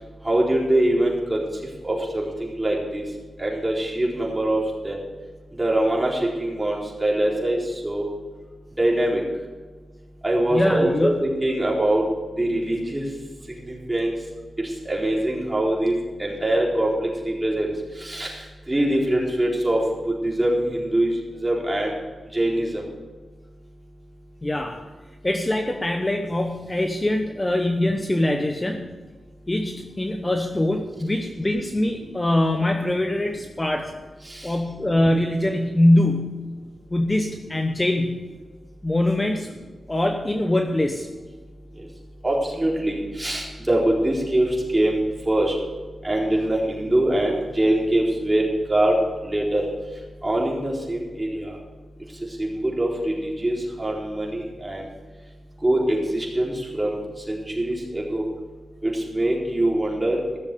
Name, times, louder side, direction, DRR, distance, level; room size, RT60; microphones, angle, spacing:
voice 1, 0.2-1.4 1.8-3.0 3.4-5.0 5.6-7.6 7.8-8.0 8.8-9.2 10.2-12.0 12.4-13.0 13.9-14.1 14.9-15.9 16.2-17.7 18.0-18.3 18.7-21.1 21.4-21.9 22.3-22.8 42.2-44.5 44.7-45.0 45.3-45.5 46.0-49.0 49.2-49.6 50.2-51.4 52.6-54.8 55.6-56.9 57.3-58.2 58.8-60.2, right 1 dB, 20° right, -3 dB, 4.1 m, -23 dB
voice 2, 10.5-11.2 24.4-24.8 25.2-28.9 29.5-33.9 34.4-36.5 36.9-38.2 38.8-39.5 39.9-41.1, left 1 dB, 20° left, 5 dB, 0.9 m, -23 dB
15.5 x 7.0 x 6.8 m, 1.3 s
cardioid pair, 70°, 0 cm